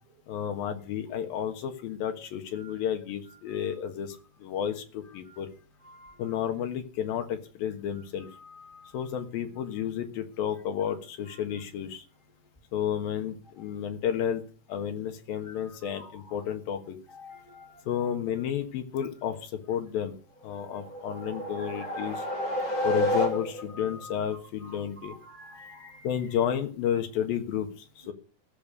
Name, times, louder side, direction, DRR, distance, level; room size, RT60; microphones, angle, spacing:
voice 1, 0.3-5.5 6.2-8.3 8.9-12.0 12.7-14.4 14.7-17.0 17.9-20.2 20.4-22.3 22.8-25.2 26.0-28.1, left 9 dB, 80° left, 6 dB, 3.3 m, -32 dB
voice 2, 17.2-17.8 21.8-23.1 23.7-24.1 25.0-26.1, left 4 dB, 65° right, 2 dB, 0.5 m, -47 dB
sound 1, 20.6-23.8, left 1 dB, 25° left, 4.2 m, -30 dB
16.0 x 7.0 x 6.3 m, 0.39 s
omnidirectional pair, 4.1 m